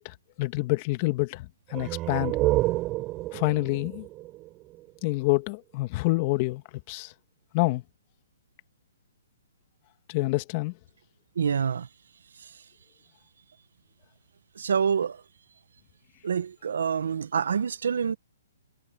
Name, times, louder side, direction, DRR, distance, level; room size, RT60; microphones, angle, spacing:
voice 1, 0.0-2.3 3.3-4.1 5.0-6.6 6.9-7.1 7.5-7.8 10.1-10.7, left 22 dB, 35° left, 1.7 m, -27 dB
sound 1, 1.7-5.2, right 18 dB, 25° right, 5.2 m, -29 dB
voice 2, 11.4-11.9 14.6-15.2 16.2-18.2, right 7 dB, 75° right, 1.4 m, -26 dB
hypercardioid pair, 145°, 0 cm